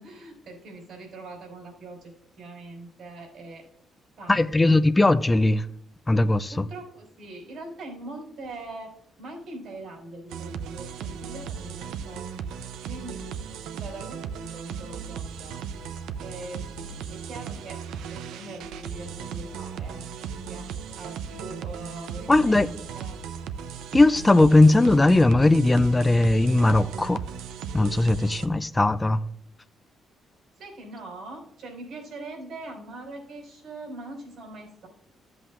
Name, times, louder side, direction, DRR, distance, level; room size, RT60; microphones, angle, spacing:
voice 1, 0.0-3.6 4.2-5.0 6.5-12.5 12.9-13.4 13.7-15.6 16.2-16.6 17.1-17.8 18.1-23.2 30.6-34.9, right 2 dB, 70° right, 4.3 m, -42 dB
voice 2, 4.3-5.7 6.1-6.6 22.3-22.7 23.9-27.2 27.7-29.2, left 2 dB, 15° left, 0.4 m, -19 dB
sound 1, 10.3-28.5, right 7 dB, 90° right, 0.5 m, -36 dB
14.0 x 7.8 x 2.5 m
cardioid pair, 90°, 0 cm